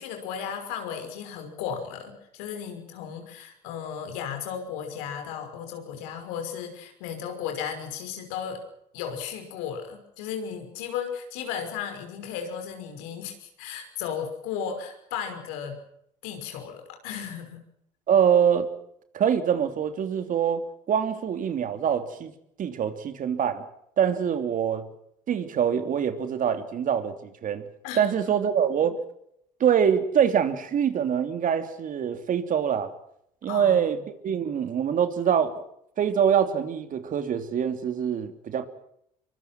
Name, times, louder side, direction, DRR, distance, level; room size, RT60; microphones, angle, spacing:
voice 1, 0.0-8.6 8.9-15.8 16.2-17.6 27.8-28.1 33.5-33.8, left 8 dB, 85° left, 6 dB, 5.6 m, -35 dB
voice 2, 18.1-18.7 19.1-22.3 22.6-23.6 24.0-24.9 25.3-27.7 28.0-29.0 29.6-32.9 33.4-35.6 36.0-38.7, right 8 dB, 55° right, 9 dB, 3.1 m, -24 dB
24.5 x 24.0 x 6.1 m, 0.74 s
supercardioid pair, 75°, 17 cm